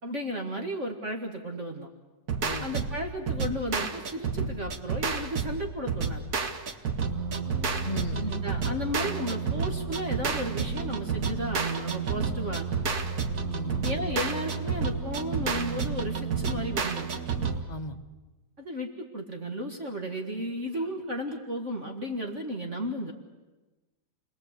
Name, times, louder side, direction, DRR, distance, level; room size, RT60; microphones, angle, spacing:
voice 1, 0.0-1.9 2.6-6.3 8.1-12.7 13.8-17.1 18.6-23.1, equal, 45° right, 2 dB, 2.2 m, -34 dB
sound 1, 2.3-17.6, right 5 dB, 65° right, 2.0 m, -30 dB
voice 2, 7.8-8.3 13.5-14.1 17.7-18.0, left 1 dB, 25° left, 4 dB, 1.2 m, -37 dB
30.0 x 21.0 x 8.2 m, 1.2 s
omnidirectional pair, 1.8 m